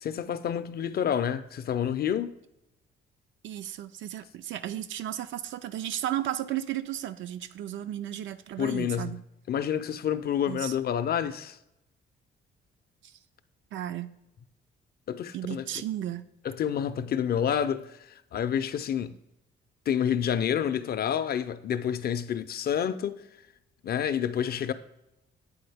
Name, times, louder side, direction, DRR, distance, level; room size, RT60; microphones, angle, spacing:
voice 1, 0.0-2.3 8.6-9.2 9.5-11.6 15.1-15.7 16.4-19.2 19.9-23.2 23.8-24.7, left 9 dB, 50° left, 0.4 m, -28 dB
voice 2, 3.4-9.2 10.5-10.7 13.0-13.1 13.7-14.2 15.3-16.3, right 12 dB, 70° right, 0.5 m, -34 dB
8.5 x 3.9 x 3.4 m
cardioid pair, 90°, 20 cm